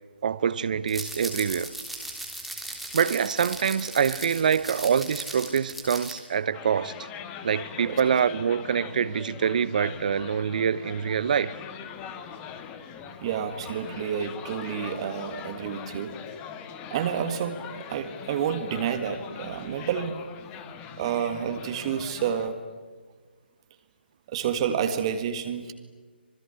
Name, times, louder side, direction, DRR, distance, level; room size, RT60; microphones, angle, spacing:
voice 1, 0.2-1.7 2.9-7.1 7.4-11.6, right 7 dB, 45° right, 0.9 m, -25 dB
sound 1, 0.9-6.1, right 1 dB, ahead, 3.3 m, -37 dB
sound 2, 6.5-22.5, left 7 dB, 20° left, 1.7 m, -41 dB
voice 2, 13.2-16.1 16.9-17.6 17.9-20.2 21.0-22.6 24.3-25.7, right 8 dB, 30° right, 1.8 m, -29 dB
26.5 x 21.0 x 10.0 m
figure-of-eight pair, 140°, 6 cm